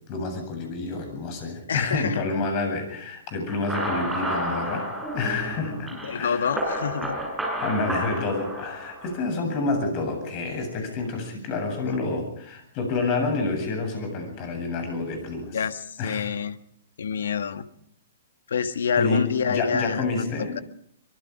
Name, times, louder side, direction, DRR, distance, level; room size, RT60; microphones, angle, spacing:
voice 1, 0.1-6.6 7.6-15.6 16.0-16.3 18.9-20.6, left 3 dB, 40° left, 6 dB, 8.0 m, -28 dB
voice 2, 1.7-2.2 6.0-7.2 15.5-16.6 17.0-17.7 18.5-20.3, left 6 dB, 70° left, 12 dB, 1.5 m, -27 dB
sound 1, 3.5-9.3, right 1 dB, 5° right, 6.9 m, -31 dB
24.5 x 23.0 x 4.9 m, 0.67 s
figure-of-eight pair, 115°, 0 cm